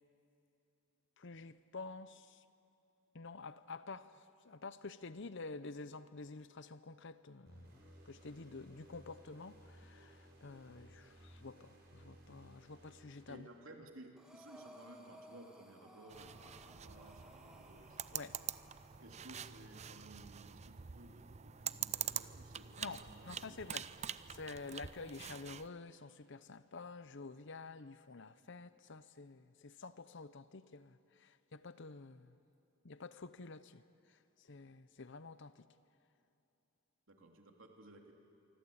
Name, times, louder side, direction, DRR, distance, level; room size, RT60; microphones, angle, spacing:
voice 1, 1.2-2.4 3.1-13.4 18.1-18.4 22.8-23.9 24.3-32.4 32.8-33.8 34.4-35.7, left 3 dB, 60° left, 0.9 m, -49 dB
sound 1, 7.5-13.9, equal, 50° right, 6.6 m, -60 dB
voice 2, 12.9-18.4 19.0-23.7 37.1-38.1, right 1 dB, 70° right, 3.0 m, -57 dB
Breathing, 14.2-19.1, equal, 5° right, 2.3 m, -59 dB
sound 2, 16.1-25.7, right 9 dB, 30° right, 0.5 m, -45 dB
26.0 x 24.5 x 8.7 m
head